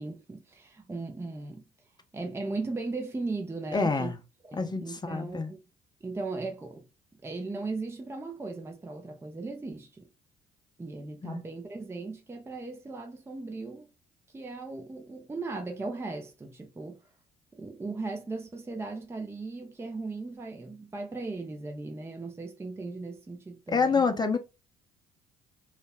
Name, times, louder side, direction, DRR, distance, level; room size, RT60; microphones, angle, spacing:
voice 1, 0.0-1.6 2.1-4.1 4.4-5.6 6.0-6.8 7.2-10.1 10.8-13.9 14.3-17.0 17.5-24.1, right 3 dB, 15° right, 0.6 m, -37 dB
voice 2, 3.7-4.2 4.6-5.5 11.2-11.4 23.7-24.4, left 4 dB, 20° left, 0.7 m, -27 dB
2.4 x 2.1 x 3.3 m
hypercardioid pair, 55°, 19 cm